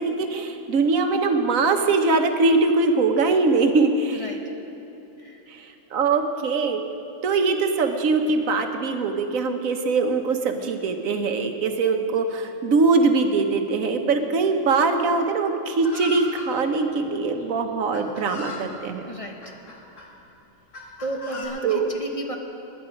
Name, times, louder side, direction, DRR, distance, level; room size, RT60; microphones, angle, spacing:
voice 1, 0.0-4.2 5.9-6.8 7.2-19.0 21.6-21.9, right 4 dB, 90° right, 6 dB, 1.4 m, -22 dB
Chicken rooster, 15.8-16.5 17.4-17.5 17.9-18.6 19.4-20.1 20.7-21.5, left 3 dB, 65° left, 2.5 m, -37 dB
voice 2, 19.0-19.5 21.0-22.4, right 1 dB, 25° left, 2 dB, 1.1 m, -33 dB
20.5 x 10.0 x 5.2 m, 3.0 s
omnidirectional pair, 1.4 m